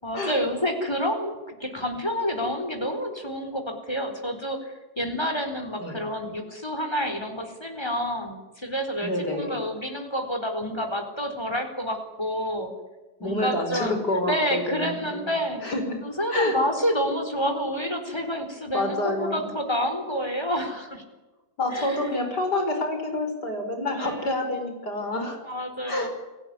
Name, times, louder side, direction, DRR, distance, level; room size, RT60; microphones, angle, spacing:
voice 1, 0.0-12.7 13.2-13.9 14.3-15.6 16.0-21.0 21.7-22.0 24.0-24.4 25.4-26.1, equal, 15° left, 6 dB, 4.4 m, -29 dB
voice 2, 9.0-9.6 13.2-15.3 15.6-16.0 16.3-16.6 18.7-19.4 21.6-25.4 25.9-26.1, left 1 dB, 70° left, 5 dB, 5.9 m, -28 dB
29.0 x 18.0 x 9.8 m, 1.2 s
omnidirectional pair, 1.8 m